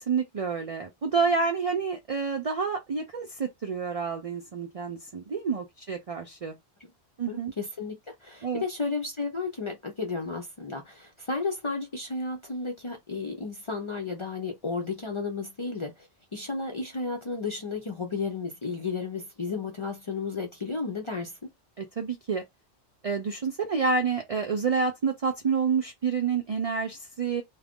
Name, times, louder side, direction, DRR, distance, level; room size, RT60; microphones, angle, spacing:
voice 1, 0.0-6.6 7.2-7.5 8.4-8.6 21.8-22.4 23.0-27.4, right 5 dB, 45° right, 0.5 m, -28 dB
voice 2, 7.3-21.3, left 4 dB, 40° left, 0.5 m, -33 dB
2.5 x 2.2 x 3.5 m
omnidirectional pair, 1.1 m